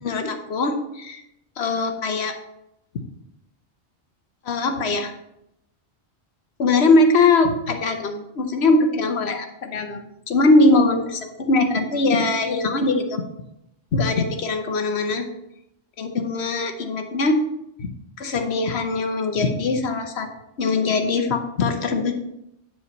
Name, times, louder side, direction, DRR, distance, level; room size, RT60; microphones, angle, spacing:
voice 1, 0.0-1.2 1.6-2.3 4.4-5.1 6.6-13.2 13.9-15.3 16.0-17.4 17.8-17.9 18.2-20.3 20.6-22.1, left 3 dB, 75° left, 6 dB, 1.2 m, -21 dB
9.4 x 5.0 x 4.0 m, 0.84 s
omnidirectional pair, 1.1 m